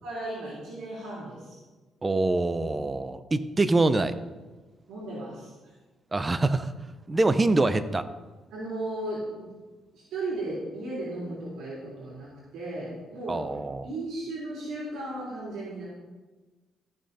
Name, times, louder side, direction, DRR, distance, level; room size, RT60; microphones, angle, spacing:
voice 1, 0.0-1.6 4.9-5.5 8.5-9.5 9.9-13.4 13.8-15.8, right 2 dB, 80° right, -6 dB, 3.4 m, -35 dB
voice 2, 2.0-4.1 6.1-6.7 7.1-8.0 13.3-13.9, right 2 dB, 25° right, 12 dB, 0.7 m, -24 dB
14.5 x 6.3 x 4.2 m, 1.3 s
cardioid pair, 90°, 0 cm